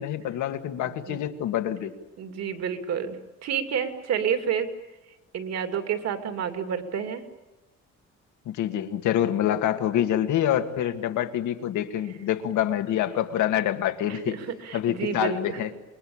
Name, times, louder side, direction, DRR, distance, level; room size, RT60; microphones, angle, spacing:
voice 1, 0.0-1.9 8.5-14.4 14.7-15.7, left 11 dB, 90° left, 7 dB, 2.0 m, -26 dB
voice 2, 0.8-1.2 2.2-4.7 5.3-7.2 9.2-9.3 14.1-15.7, right 7 dB, 60° right, 7 dB, 2.8 m, -30 dB
27.5 x 22.0 x 8.8 m, 1.1 s
cardioid pair, 160°, 29 cm